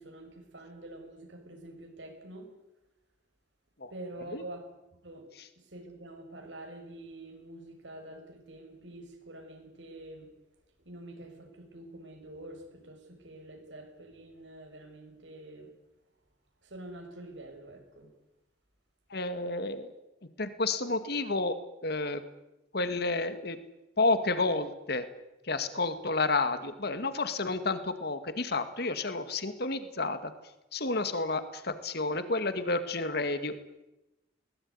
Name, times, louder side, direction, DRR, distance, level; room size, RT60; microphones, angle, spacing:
voice 1, 0.0-2.5 3.9-4.6 5.0-5.2 5.7-10.3 10.8-15.7 16.6-18.1, right 1 dB, 80° right, 4 dB, 6.7 m, -46 dB
voice 2, 19.1-19.9 20.4-21.5 21.8-22.2 22.7-23.6 24.0-25.0 25.5-30.3 30.7-33.6, left 3 dB, 60° left, 10 dB, 2.1 m, -30 dB
22.0 x 19.5 x 9.8 m, 0.95 s
head